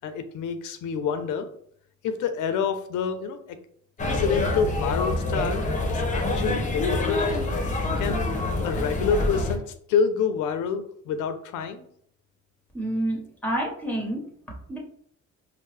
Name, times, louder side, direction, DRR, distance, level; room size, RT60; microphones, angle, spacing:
voice 1, 0.0-1.5 2.0-3.6 4.1-5.6 5.9-7.1 8.0-8.3 8.6-9.6 9.9-11.8, left 6 dB, 85° left, 8 dB, 0.5 m, -27 dB
sound 1, 4.0-9.6, left 2 dB, 25° left, 0.8 m, -26 dB
voice 2, 12.7-14.2 14.7-14.8, right 1 dB, 5° left, -1 dB, 1.2 m, -28 dB
4.4 x 2.0 x 3.2 m, 0.65 s
cardioid pair, 90°, 30 cm